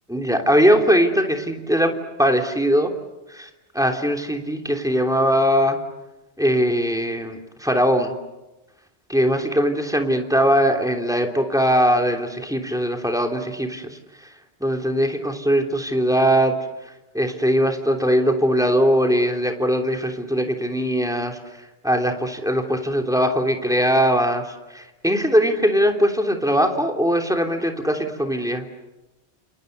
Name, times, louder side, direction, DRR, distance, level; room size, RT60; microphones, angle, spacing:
voice 1, 0.1-1.9 2.2-2.9 3.3-3.5 3.7-5.8 6.4-8.1 9.1-14.0 14.6-16.5 17.1-21.4 21.8-28.6, equal, 5° right, 3 dB, 3.2 m, -20 dB
29.5 x 28.5 x 6.8 m, 1.0 s
omnidirectional pair, 1.1 m